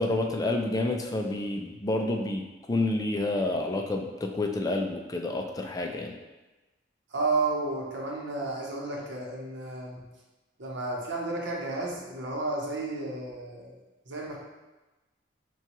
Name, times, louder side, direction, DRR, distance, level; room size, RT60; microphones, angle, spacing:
voice 1, 0.0-6.1, left 2 dB, 20° left, 3 dB, 0.3 m, -29 dB
voice 2, 7.1-10.1 10.6-13.7 14.1-14.4, right 3 dB, 70° right, -2 dB, 0.8 m, -32 dB
5.5 x 2.3 x 2.9 m, 1.1 s
head